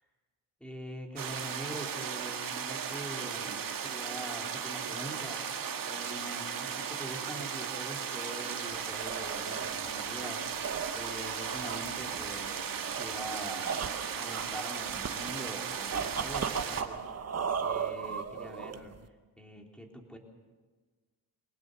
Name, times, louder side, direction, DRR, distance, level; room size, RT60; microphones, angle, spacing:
voice 1, 0.6-5.4 5.9-13.9 14.1-17.0 17.6-18.9 19.4-20.2, right 1 dB, ahead, 1 dB, 3.8 m, -44 dB
sound 1, 1.2-16.8, right 7 dB, 50° right, 1.8 m, -36 dB
sound 2, 8.7-19.1, right 6 dB, 35° right, 1.0 m, -37 dB
23.5 x 19.0 x 6.9 m, 1.4 s
cardioid pair, 100°, 42 cm